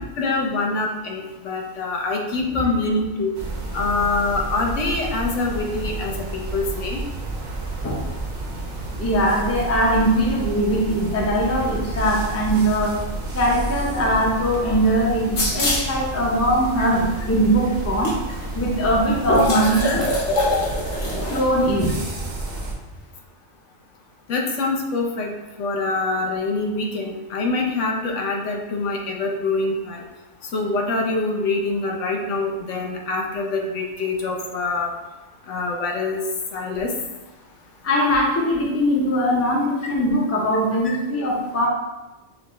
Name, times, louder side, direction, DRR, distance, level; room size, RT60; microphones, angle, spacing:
voice 1, 0.2-3.3 3.7-7.0 19.4-19.6 20.3-20.7 24.3-25.3 25.6-30.1 30.5-34.9 35.5-36.2 36.5-36.9 40.8-41.0, left 3 dB, 70° left, 0 dB, 1.0 m, -25 dB
sound 1, 3.3-22.7, right 2 dB, 50° right, 0.7 m, -30 dB
voice 2, 9.0-13.0 13.3-18.1 18.5-20.1 21.0-21.9 37.8-41.7, equal, 15° left, -3 dB, 0.5 m, -21 dB
sound 2, 15.4-16.0 16.8-16.9 18.1-18.2 18.4-18.5 19.2-21.4, equal, 90° left, 1.6 m, -25 dB
6.6 x 2.3 x 3.0 m, 1.1 s
omnidirectional pair, 1.3 m